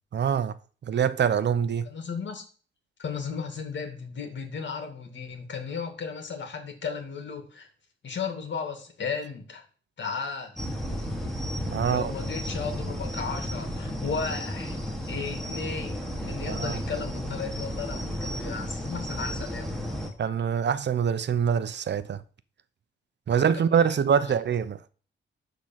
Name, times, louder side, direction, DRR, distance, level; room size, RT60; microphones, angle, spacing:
voice 1, 0.1-0.5 0.8-1.9 11.7-12.1 16.5-16.8 20.2-22.2 23.3-24.8, right 7 dB, 60° right, 0.8 m, -24 dB
voice 2, 1.8-2.4 3.0-7.7 8.0-9.6 10.0-10.6 11.8-14.8 15.1-19.8 23.3-23.6 23.9-24.0 24.3-24.4, left 5 dB, 65° left, 2.5 m, -35 dB
sound 1, 10.6-20.1, equal, ahead, 2.0 m, -33 dB
11.5 x 3.9 x 7.4 m
wide cardioid pair, 115°, 20 cm